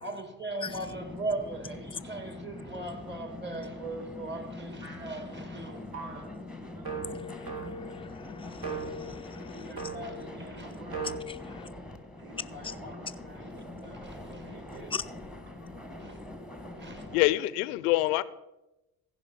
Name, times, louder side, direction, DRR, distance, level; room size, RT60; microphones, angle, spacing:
voice 1, 0.0-6.3 9.5-11.2 12.2-13.5 13.8-15.0 16.0-16.2 16.8-17.1, right 2 dB, 25° right, 2.0 m, -40 dB
sound 1, 0.6-17.3, left 2 dB, ahead, 1.2 m, -43 dB
sound 2, 4.8-5.3 5.9-6.3 6.8-8.0 8.6-9.1 9.8-10.2 10.9-11.2, right 4 dB, 55° right, 2.9 m, -38 dB
voice 2, 8.1-9.7 11.4-11.7 12.6-12.7 14.9-15.0, left 6 dB, 15° left, 0.5 m, -40 dB
voice 3, 17.1-18.2, left 18 dB, 85° left, 0.6 m, -25 dB
15.5 x 5.3 x 5.2 m
hypercardioid pair, 70°, 43 cm